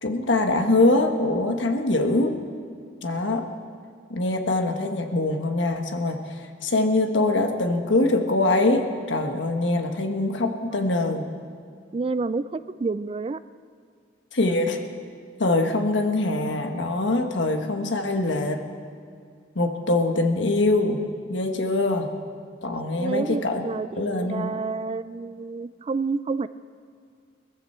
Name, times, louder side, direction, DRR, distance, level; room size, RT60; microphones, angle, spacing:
voice 1, 0.0-2.4 3.0-3.5 4.1-11.3 14.3-14.8 15.4-18.6 19.5-21.0 21.3-22.1 22.6-23.6 24.0-24.6, left 2 dB, 90° left, 5 dB, 1.4 m, -23 dB
voice 2, 11.9-13.4 23.0-26.5, right 4 dB, 30° right, 15 dB, 0.3 m, -29 dB
20.0 x 14.5 x 4.4 m, 2.2 s
head